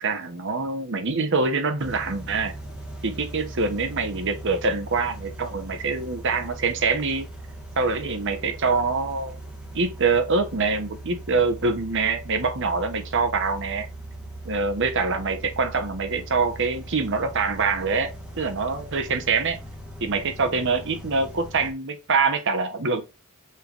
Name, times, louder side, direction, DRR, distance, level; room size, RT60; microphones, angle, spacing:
voice 1, 0.0-2.5 3.0-7.3 7.8-9.4 9.7-13.9 14.4-19.6 20.0-23.0, right 4 dB, 55° right, 1.0 m, -25 dB
sound 1, 1.8-21.7, right 1 dB, 5° right, 1.2 m, -39 dB
5.6 x 3.3 x 2.5 m
head